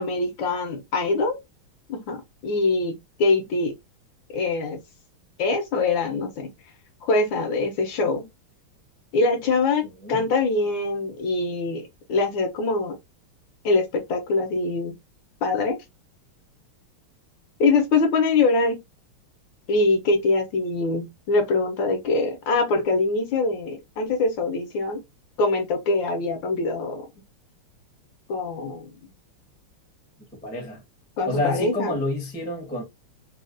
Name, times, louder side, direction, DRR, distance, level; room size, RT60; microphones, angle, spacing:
voice 1, 0.0-1.4 1.9-3.7 4.3-4.8 5.4-6.5 7.0-8.3 9.1-13.0 13.6-14.9 15.4-15.8 17.6-18.8 19.7-25.0 25.4-27.0 28.3-29.1 31.2-32.0, left 3 dB, 70° left, 1.3 m, -23 dB
voice 2, 30.4-30.8 31.3-32.8, left 1 dB, 10° left, 0.6 m, -28 dB
4.0 x 2.3 x 2.5 m
omnidirectional pair, 2.4 m